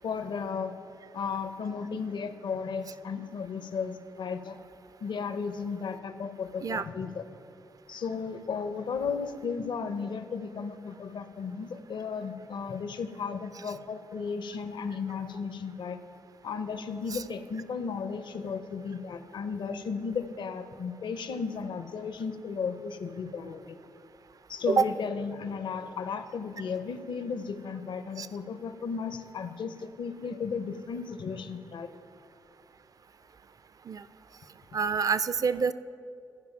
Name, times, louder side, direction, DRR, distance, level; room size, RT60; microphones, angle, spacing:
voice 1, 0.0-0.7 1.1-4.6 5.0-7.2 7.9-16.0 16.4-23.8 24.5-31.9, left 5 dB, 65° left, 11 dB, 0.6 m, -34 dB
voice 2, 34.7-35.7, right 5 dB, 45° right, 15 dB, 0.4 m, -27 dB
13.5 x 5.1 x 5.8 m, 2.6 s
hypercardioid pair, 40°, 9 cm